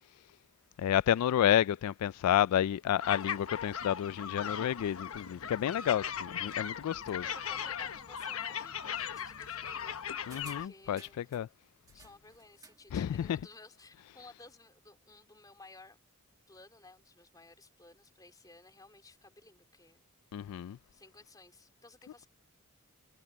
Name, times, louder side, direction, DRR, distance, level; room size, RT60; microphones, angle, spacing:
voice 1, 0.8-7.2 10.3-11.5 12.9-13.4 20.3-20.8, left 10 dB, 90° left, 0.3 m, -30 dB
sound 1, 3.0-10.7, left 8 dB, 70° left, 1.1 m, -38 dB
voice 2, 6.9-10.0 10.4-11.3 11.9-16.0 16.5-20.1 20.9-22.3, left 2 dB, 15° left, 4.1 m, -56 dB
sound 2, 10.3-11.4 11.9-12.9 13.2-13.3, right 4 dB, 15° right, 1.9 m, -56 dB
head